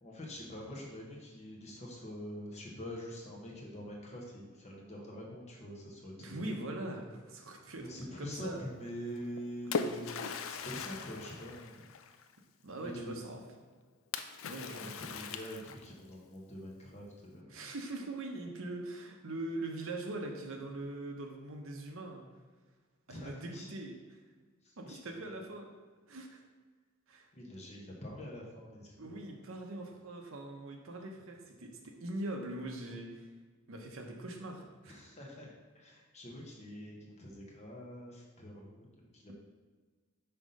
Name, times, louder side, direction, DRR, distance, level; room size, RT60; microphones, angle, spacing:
voice 1, 0.0-6.4 7.8-11.8 12.8-13.2 14.7-17.6 23.1-23.7 24.6-25.3 27.3-29.2 34.8-39.3, equal, 30° left, -2 dB, 1.2 m, -45 dB
voice 2, 6.2-8.7 12.6-13.4 14.5-15.1 17.5-22.3 23.1-24.2 24.8-25.7 26.1-26.4 27.1-27.3 29.0-33.3 33.7-35.0, right 2 dB, 65° right, 2 dB, 0.9 m, -42 dB
Splash splatter, 9.1-12.3 14.1-16.1, left 6 dB, 65° left, 0.4 m, -40 dB
5.7 x 3.6 x 5.3 m, 1.4 s
head